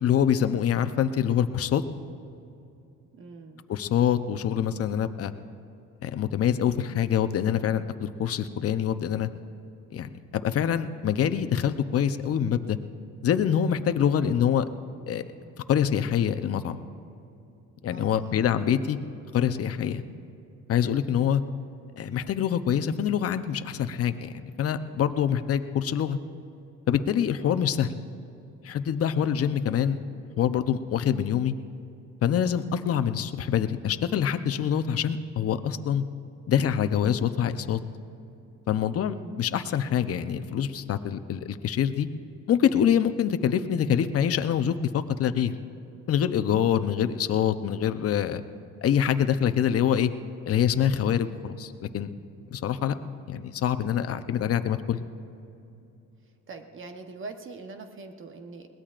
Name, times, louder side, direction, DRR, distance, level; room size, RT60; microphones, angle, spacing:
voice 1, 0.0-1.8 3.7-5.3 6.0-9.3 9.9-12.8 13.2-14.7 15.1-15.2 15.7-16.8 17.8-19.0 19.3-20.0 20.7-21.4 22.0-26.2 26.9-27.9 28.6-30.0 30.4-31.5 32.2-36.0 36.5-37.8 38.7-42.1 42.5-45.5 46.1-48.4 48.8-50.1 50.4-52.1 52.5-52.9 53.3-55.0, left 9 dB, 50° left, 10 dB, 0.8 m, -25 dB
voice 2, 3.1-3.6 14.2-14.3 17.9-18.5 21.2-21.3 27.4-27.5 39.0-39.3 56.5-58.7, right 3 dB, 40° right, 6 dB, 1.1 m, -43 dB
22.0 x 18.5 x 2.5 m, 2.7 s
cardioid pair, 105°, 31 cm